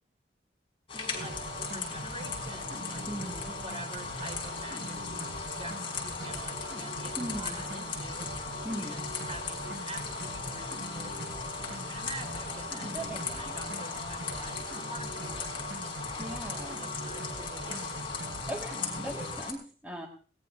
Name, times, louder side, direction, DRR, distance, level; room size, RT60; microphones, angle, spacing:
sound 1, 0.9-19.5, left 4 dB, 30° left, 5.4 m, -38 dB
voice 1, 0.9-3.1 3.5-8.3 8.8-13.1 13.3-18.1, right 2 dB, 35° right, 3 dB, 3.3 m, -47 dB
sound 2, 1.1-19.3, right 1 dB, 85° right, 5.0 m, -42 dB
voice 2, 3.1-3.6 7.2-7.6 8.6-9.0 12.8-13.5 16.2-16.8 18.5-20.1, right 1 dB, 10° right, -1 dB, 1.6 m, -39 dB
22.0 x 19.0 x 2.6 m, 0.39 s
head